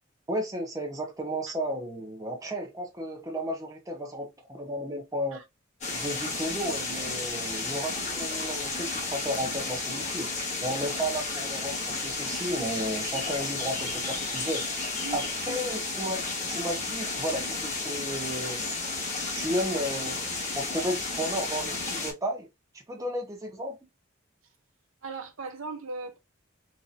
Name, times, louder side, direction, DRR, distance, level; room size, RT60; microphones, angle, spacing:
voice 1, 0.3-5.4 5.9-10.3 10.6-14.7 15.1-18.6 19.3-20.3 20.5-22.5 22.9-23.8, equal, 15° right, 0.7 m, -33 dB
sound 1, 5.8-22.1, left 3 dB, 35° left, 1.2 m, -32 dB
voice 2, 15.0-15.6 25.0-26.2, right 4 dB, 80° right, 0.9 m, -38 dB
3.8 x 2.9 x 2.4 m
head